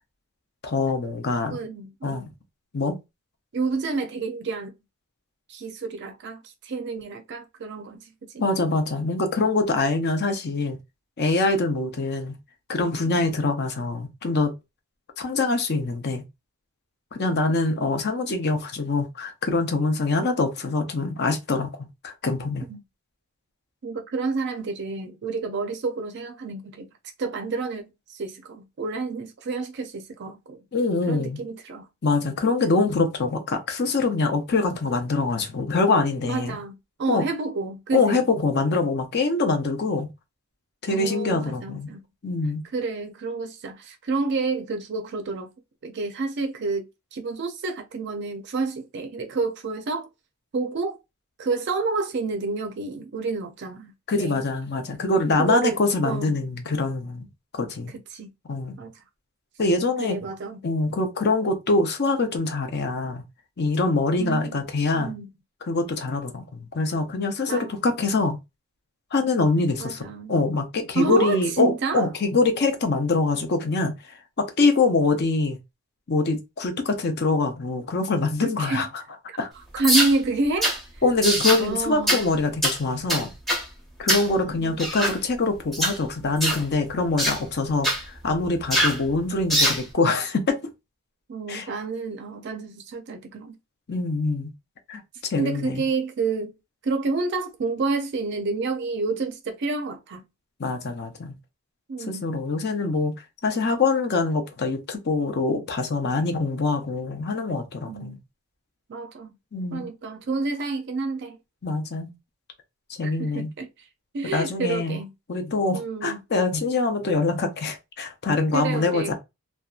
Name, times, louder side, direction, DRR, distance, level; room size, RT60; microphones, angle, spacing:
voice 1, 0.6-1.6 2.0-2.3 2.7-3.0 8.4-10.8 11.2-12.3 12.7-14.5 15.2-16.2 17.1-21.7 22.0-22.7 30.7-31.4 32.0-36.6 37.1-37.3 37.9-40.1 40.8-41.9 42.2-42.6 54.1-57.3 57.6-57.9 58.5-58.8 59.6-60.2 60.6-63.2 63.6-65.1 65.7-68.4 69.1-73.9 74.4-75.6 76.1-78.9 79.4-79.5 81.0-83.3 84.0-90.6 91.5-91.7 93.9-94.5 94.9-95.8 100.6-101.4 102.0-103.1 103.4-108.2 109.5-109.9 111.6-112.1 113.0-113.5 114.3-115.0 115.3-119.1, left 3 dB, 50° left, 0.6 m, -24 dB
voice 2, 1.5-2.3 3.5-4.7 5.5-8.1 13.1-13.3 17.5-17.9 22.7-22.8 23.8-26.9 27.2-30.6 31.1-31.9 36.2-38.3 40.9-42.0 42.7-45.5 45.8-46.8 47.1-50.1 50.5-51.0 51.4-54.4 55.3-56.3 58.1-58.3 58.8-59.0 60.0-60.6 64.2-64.6 64.9-65.3 67.5-67.7 69.8-70.5 70.9-72.1 78.4-78.9 79.3-79.4 79.7-80.7 81.6-82.2 84.3-85.2 91.3-93.5 95.4-96.6 96.8-100.3 101.9-102.3 107.9-108.2 108.9-109.3 109.7-111.4 113.0-113.7 114.1-115.1 115.7-116.2 118.5-119.1, right 3 dB, 50° right, 0.4 m, -29 dB
sound 1, 79.8-80.1 80.6-80.8 81.2-81.6 82.1-82.2 82.6-82.8 83.1-83.6 84.1-84.3 84.8-85.2 85.7-86.0 86.4-86.6 87.2-87.4 87.8-88.0 88.7-89.0 89.5-89.8, equal, ahead, 0.7 m, -22 dB
2.7 x 2.2 x 2.3 m
head